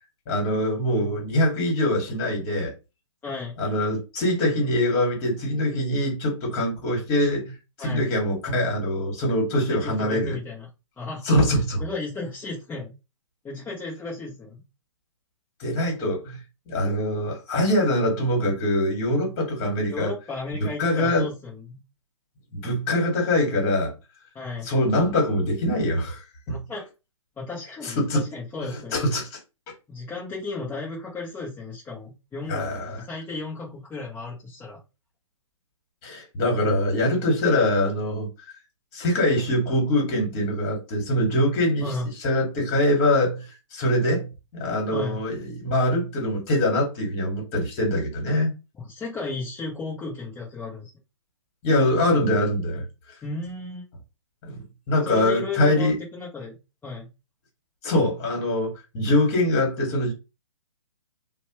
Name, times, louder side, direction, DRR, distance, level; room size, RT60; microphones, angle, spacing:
voice 1, 0.3-2.7 3.6-10.4 11.2-11.8 15.6-16.4 16.7-20.1 20.8-21.3 22.5-23.9 24.6-26.2 26.5-26.6 27.8-28.2 28.6-29.4 32.5-33.0 36.0-38.6 38.9-41.9 42.2-48.5 51.6-52.8 54.5-55.9 57.8-60.1, left 1 dB, 30° left, 1.7 m, -23 dB
voice 2, 3.2-3.5 7.8-8.1 9.7-10.7 11.0-11.3 11.8-12.9 13.4-14.6 19.9-21.8 24.3-24.7 26.5-26.8 27.4-29.0 29.9-32.6 32.9-34.8 41.8-42.1 44.9-45.2 48.7-50.9 53.2-53.8 55.0-56.6 56.8-57.1, left 3 dB, 10° left, 0.7 m, -34 dB
2.8 x 2.2 x 3.0 m
hypercardioid pair, 135°, 17 cm